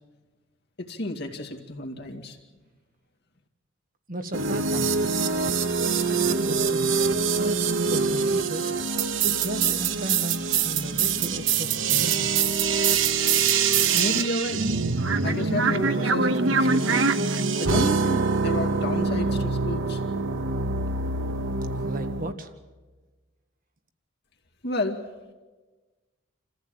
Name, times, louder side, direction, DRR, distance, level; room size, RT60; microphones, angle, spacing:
voice 1, 0.8-2.4 13.9-14.6 15.2-17.1 17.6-20.0 24.6-25.0, left 1 dB, 55° left, 2 dB, 2.3 m, -31 dB
voice 2, 4.1-4.9 6.0-6.9 7.3-8.7 9.2-12.4 21.8-22.5, right 1 dB, 45° right, 7 dB, 1.6 m, -35 dB
sound 1, 4.3-22.3, right 5 dB, 75° right, 1.0 m, -24 dB
27.5 x 15.0 x 9.0 m, 1.3 s
head